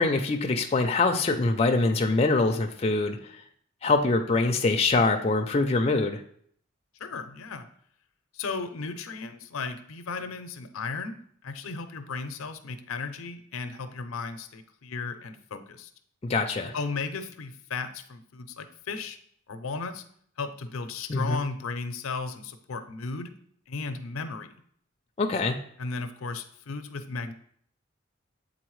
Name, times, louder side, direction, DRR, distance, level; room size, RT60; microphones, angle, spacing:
voice 1, 0.0-3.2 3.8-6.2 16.3-16.7 21.1-21.4 25.2-25.6, left 3 dB, 30° left, 4 dB, 0.4 m, -24 dB
voice 2, 7.0-7.7 8.3-15.9 16.7-19.2 19.5-20.0 20.4-23.3 23.7-24.5 25.8-27.3, left 4 dB, 90° left, 10 dB, 0.5 m, -35 dB
7.8 x 4.1 x 3.1 m, 0.63 s
head